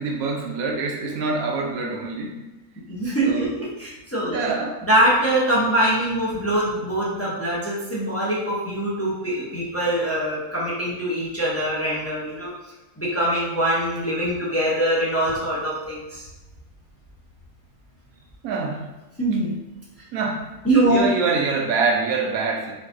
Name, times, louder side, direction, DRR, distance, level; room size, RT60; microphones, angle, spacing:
voice 1, 0.0-2.3 3.2-3.5 4.2-4.8 18.4-18.8 20.1-20.4 20.9-22.7, right 4 dB, 80° right, 1 dB, 1.1 m, -25 dB
voice 2, 2.8-4.4 4.9-12.5 13.0-16.2 19.2-19.6 20.6-21.1, right 1 dB, 20° left, -7 dB, 0.4 m, -23 dB
3.8 x 2.6 x 2.5 m, 1.1 s
omnidirectional pair, 1.5 m